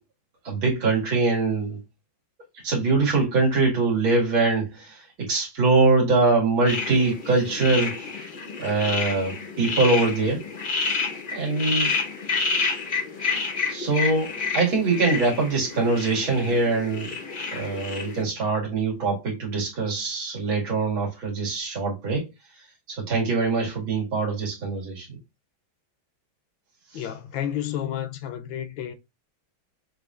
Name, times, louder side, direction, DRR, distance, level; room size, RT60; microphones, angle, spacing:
voice 1, 0.4-1.8 2.6-8.0 8.6-10.4 11.3-11.9 13.7-17.1 17.5-22.3 22.9-25.1 26.9-27.0, right 3 dB, 85° right, 2.8 m, -23 dB
sound 1, 6.7-18.2, left 4 dB, 45° left, 0.6 m, -29 dB
voice 2, 26.9-28.9, left 10 dB, 75° left, 1.4 m, -31 dB
6.7 x 2.7 x 2.4 m
omnidirectional pair, 2.1 m